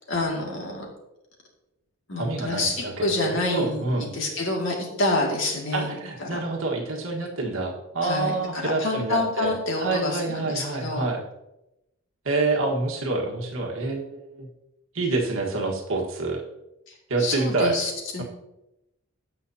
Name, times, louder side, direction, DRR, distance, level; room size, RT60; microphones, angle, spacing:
voice 1, 0.1-0.9 2.1-5.9 6.2-6.4 8.0-11.1 17.2-18.2, left 2 dB, 60° left, -1 dB, 2.3 m, -27 dB
voice 2, 2.1-4.1 5.7-11.2 12.2-14.5 14.9-16.4 17.1-17.8, right 3 dB, 70° right, 0 dB, 1.6 m, -27 dB
16.0 x 5.9 x 2.8 m, 0.91 s
head